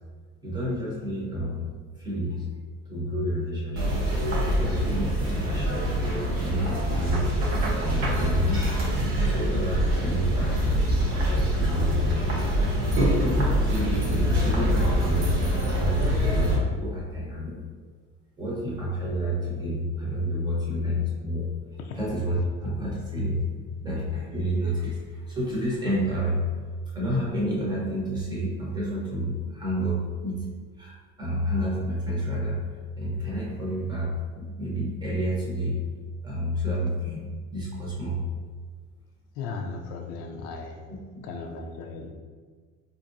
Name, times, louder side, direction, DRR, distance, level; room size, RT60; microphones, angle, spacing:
voice 1, 0.4-1.7 2.0-2.5 2.9-4.0 4.6-5.7 6.4-7.3 7.8-8.8 9.2-10.8 11.3-12.6 13.2-15.3 15.7-17.6 18.4-21.5 22.0-23.5 23.8-26.5 26.9-30.4 30.8-32.6 33.0-35.8 36.2-38.2 40.9-41.2, equal, 15° right, -5 dB, 0.8 m, -29 dB
sound 1, 3.8-16.6, equal, 50° right, 1.0 m, -25 dB
Knock, 7.1-8.3, right 2 dB, 70° right, 0.8 m, -33 dB
voice 2, 39.4-40.8 41.2-42.1, left 4 dB, 55° left, 3 dB, 0.4 m, -36 dB
4.0 x 2.6 x 2.5 m, 1.5 s
cardioid pair, 165°, 29 cm